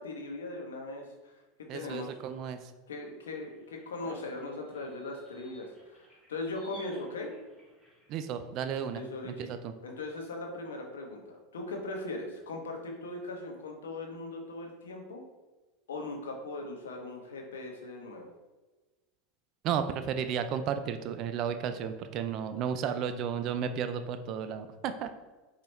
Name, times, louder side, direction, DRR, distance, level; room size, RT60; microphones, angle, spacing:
voice 1, 0.0-2.2 2.9-7.3 8.9-9.5 9.8-15.2 15.9-18.3, left 2 dB, 85° left, 1 dB, 0.7 m, -39 dB
voice 2, 1.7-2.7 8.1-9.7 19.6-25.1, right 8 dB, 50° right, 9 dB, 0.3 m, -33 dB
sound 1, 3.3-8.8, equal, 5° left, 1.2 m, -57 dB
4.4 x 2.4 x 3.1 m, 1.2 s
hypercardioid pair, 90°, 0 cm